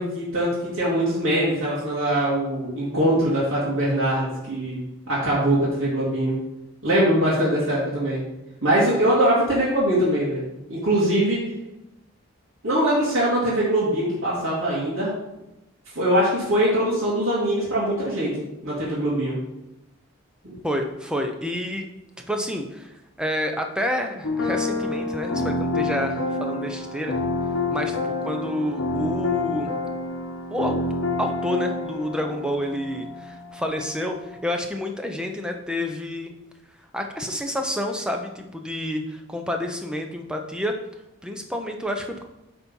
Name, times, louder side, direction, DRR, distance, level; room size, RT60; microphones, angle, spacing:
voice 1, 0.0-4.8 5.1-6.4 6.8-8.2 8.6-10.4 10.7-11.4 12.6-15.1 16.0-18.3 18.6-19.4, right 1 dB, 65° right, -8 dB, 2.4 m, -22 dB
voice 2, 20.6-21.9 22.3-27.3 27.7-29.7 30.5-30.8 31.2-36.3 36.9-40.8 41.2-42.2, left 1 dB, 5° right, 4 dB, 0.7 m, -29 dB
sound 1, 24.2-34.4, left 2 dB, 60° left, 1.2 m, -28 dB
9.1 x 4.2 x 5.4 m, 0.92 s
head